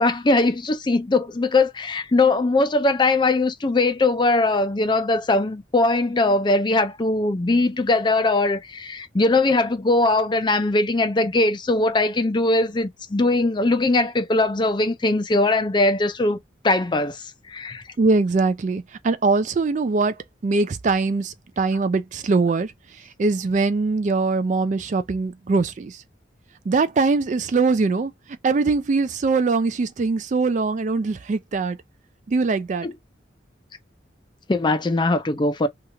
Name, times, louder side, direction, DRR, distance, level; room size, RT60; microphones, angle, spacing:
voice 1, 0.0-16.4 16.6-17.8 32.8-32.9 34.5-35.7, left 2 dB, 25° left, 0.4 m, -20 dB
voice 2, 18.0-20.2 20.4-22.7 23.2-26.0 26.7-28.1 28.4-31.8 32.3-32.9, right 3 dB, 40° right, 0.3 m, -22 dB
2.9 x 2.4 x 2.8 m
head